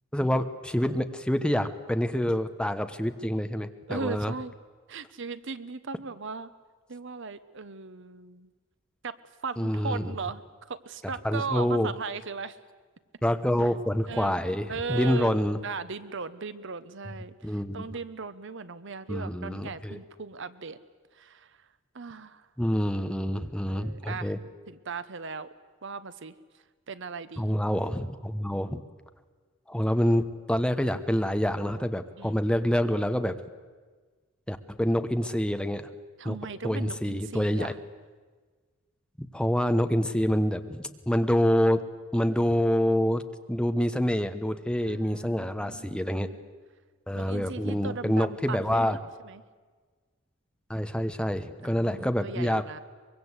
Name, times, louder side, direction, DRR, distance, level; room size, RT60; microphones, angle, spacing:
voice 1, 0.1-4.3 9.6-10.1 11.2-11.9 13.2-15.6 17.4-17.8 19.1-20.0 22.6-24.4 27.4-28.8 29.7-33.4 34.5-35.9 36.2-36.4 36.6-37.7 39.2-41.8 42.1-43.2 43.5-46.3 47.1-49.0 50.7-52.6, equal, 5° left, 9 dB, 1.0 m, -27 dB
voice 2, 3.9-4.5 4.9-6.5 6.9-8.5 9.0-9.1 9.4-12.6 14.1-20.8 21.1-21.6 21.9-22.5 23.7-24.3 24.7-25.5 25.8-26.3 26.9-27.5 32.2-32.4 36.2-37.8 44.9-46.5 47.1-49.4 51.6-52.8, right 4 dB, 60° right, 14 dB, 0.9 m, -38 dB
24.0 x 22.5 x 8.1 m, 1.4 s
head